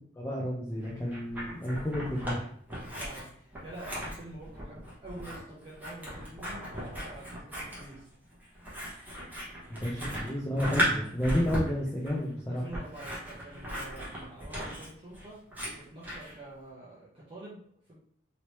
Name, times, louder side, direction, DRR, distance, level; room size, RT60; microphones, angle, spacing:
voice 1, 0.2-2.5 9.7-12.6, equal, 15° left, -3 dB, 0.5 m, -31 dB
Scissors, 0.8-2.4 2.7-16.3, equal, 10° right, 1.0 m, -36 dB
voice 2, 3.0-8.1 10.0-10.2 12.5-15.4 15.7-17.6 17.9-18.0, right 1 dB, 30° right, -8 dB, 0.7 m, -47 dB
3.0 x 2.8 x 3.1 m, 0.63 s
head